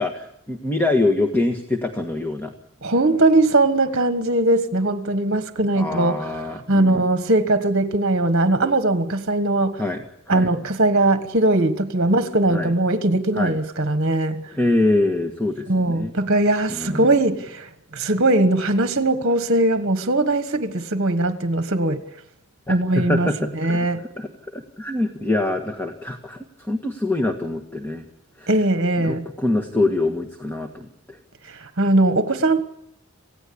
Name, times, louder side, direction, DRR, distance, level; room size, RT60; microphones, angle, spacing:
voice 1, 0.0-2.5 5.7-7.0 9.8-10.5 12.5-12.7 13.3-13.6 14.5-16.1 16.7-17.1 22.7-23.9 24.2-24.3 24.5-28.0 28.4-28.5 29.0-31.2, left 2 dB, 10° left, 1.6 m, -24 dB
voice 2, 2.8-9.8 10.3-14.5 15.7-22.0 22.7-23.3 23.5-24.0 28.5-29.3 31.4-32.6, right 2 dB, 50° right, 1.5 m, -20 dB
28.0 x 17.0 x 8.7 m
head